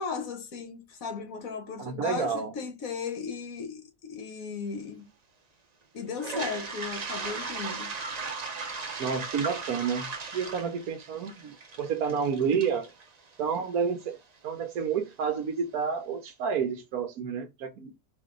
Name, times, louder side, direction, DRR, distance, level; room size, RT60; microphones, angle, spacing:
voice 1, 0.0-5.1 5.9-7.9, left 5 dB, 65° left, 1.4 m, -36 dB
voice 2, 1.8-2.5 9.0-12.9 13.4-14.2 14.4-17.9, right 6 dB, 70° right, 1.2 m, -30 dB
Toilet flush, 6.1-14.0, right 4 dB, 40° right, 0.6 m, -37 dB
4.3 x 3.0 x 3.7 m
omnidirectional pair, 1.6 m